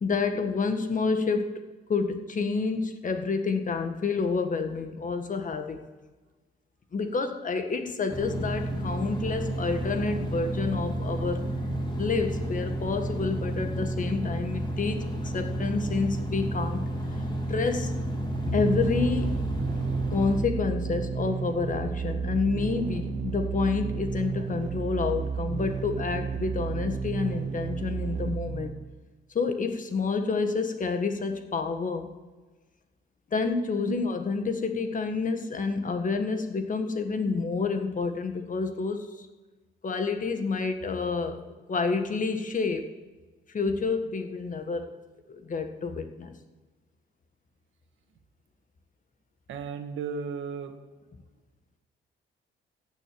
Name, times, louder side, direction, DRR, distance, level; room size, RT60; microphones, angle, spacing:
voice 1, 0.0-1.6 1.9-5.9 6.9-11.5 12.0-16.9 17.5-18.0 18.5-19.4 20.1-28.8 29.3-32.1 33.3-39.3 39.8-41.4 41.7-42.9 43.5-44.9 45.3-46.4, left 4 dB, 40° left, 7 dB, 1.5 m, -29 dB
sound 1, 8.1-20.4, right 1 dB, 25° left, 2.6 m, -31 dB
sound 2, 18.3-29.1, right 6 dB, 40° right, 0.7 m, -32 dB
voice 2, 49.5-50.7, right 6 dB, 75° right, 6 dB, 1.6 m, -34 dB
15.0 x 6.4 x 9.0 m, 1.3 s
cardioid pair, 90°, 20 cm